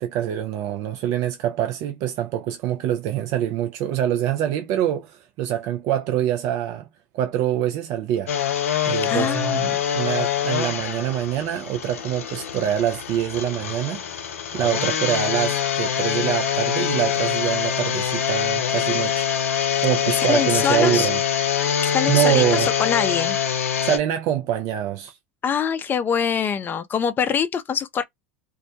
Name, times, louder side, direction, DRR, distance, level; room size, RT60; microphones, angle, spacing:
voice 1, 0.0-6.9 7.1-8.3 8.9-14.0 14.5-19.6 19.8-21.2 22.1-22.7 23.8-25.2, right 11 dB, 50° right, 0.4 m, -25 dB
sound 1, 8.3-24.0, left 9 dB, 75° left, 0.5 m, -24 dB
voice 2, 9.1-9.6 20.1-21.1 21.9-23.4 25.4-28.0, left 7 dB, 25° left, 0.5 m, -24 dB
2.3 x 2.1 x 2.7 m
hypercardioid pair, 85°, 7 cm